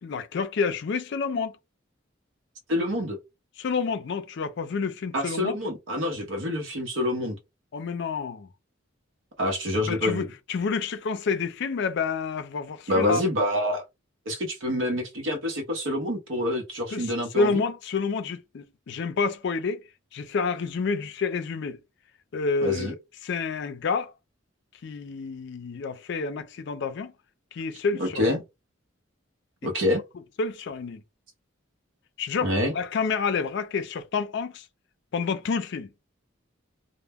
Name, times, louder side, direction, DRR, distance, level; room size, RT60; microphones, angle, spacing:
voice 1, 0.0-1.6 3.6-5.6 7.7-8.5 9.8-13.2 16.9-19.8 20.1-21.8 22.3-24.1 24.8-27.1 27.5-28.4 30.4-31.0 32.2-34.7 35.1-35.9, left 4 dB, 60° left, 0.4 m, -29 dB
voice 2, 2.7-3.2 5.1-7.4 9.4-10.3 12.9-13.8 14.3-17.6 22.6-22.9 28.0-28.4 29.6-30.0 32.4-32.7, left 1 dB, 75° right, 0.8 m, -27 dB
2.1 x 2.0 x 3.4 m
head